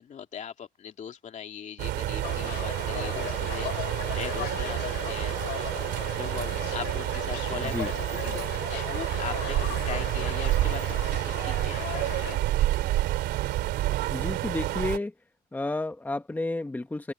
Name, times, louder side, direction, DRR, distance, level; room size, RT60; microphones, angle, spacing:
voice 1, 0.0-5.4 6.1-8.5 8.9-12.7, left 8 dB, 45° left, 2.4 m, -40 dB
sound 1, 1.8-15.0, right 15 dB, 80° right, 2.8 m, -29 dB
sound 2, 2.2-12.4, left 15 dB, 80° left, 2.5 m, -38 dB
voice 2, 7.6-7.9 14.1-15.1 15.5-17.1, left 2 dB, 10° left, 1.1 m, -31 dB
open air
cardioid pair, 110°, 17 cm